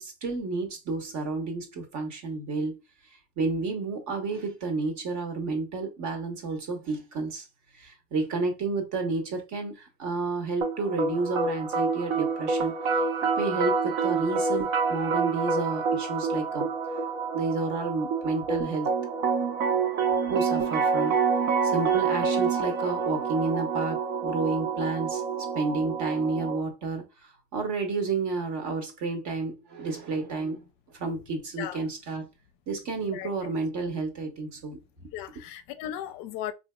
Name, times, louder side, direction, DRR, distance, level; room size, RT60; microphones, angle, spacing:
voice 1, 0.0-2.8 3.4-7.4 7.8-13.0 13.4-16.7 17.3-18.9 20.3-21.2 21.6-30.7 30.9-32.3 32.7-35.1, right 3 dB, 45° right, 1.0 m, -31 dB
sound 1, 10.6-26.6, right 5 dB, 75° right, 1.0 m, -27 dB
voice 2, 33.1-33.5 35.1-36.5, left 11 dB, 55° left, 0.5 m, -36 dB
3.9 x 2.7 x 2.2 m
cardioid pair, 135°, 41 cm